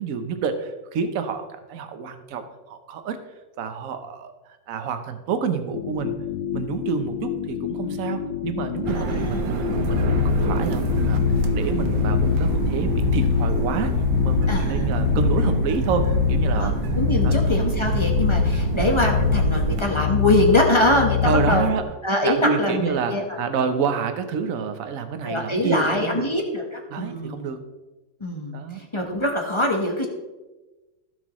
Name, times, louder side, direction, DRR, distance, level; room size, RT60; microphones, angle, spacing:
voice 1, 0.0-3.2 3.6-4.3 4.7-6.1 6.5-9.5 9.8-11.2 11.5-13.9 14.2-16.7 17.2-17.4 21.2-21.8 22.2-26.3 26.9-27.6 28.5-28.8, right 6 dB, 55° right, 8 dB, 1.1 m, -28 dB
sound 1, 5.7-15.6, left 10 dB, 85° left, 1.5 m, -31 dB
voice 2, 8.9-9.4 14.5-14.9 16.5-21.7 22.0-23.4 25.2-27.5 28.2-30.1, left 1 dB, 20° left, 1 dB, 0.9 m, -23 dB
sound 2, 8.9-19.8, right 5 dB, 80° right, 1.5 m, -27 dB
sound 3, 9.7-21.8, left 8 dB, 70° left, 1.1 m, -24 dB
15.5 x 6.2 x 3.1 m, 1.1 s
omnidirectional pair, 2.0 m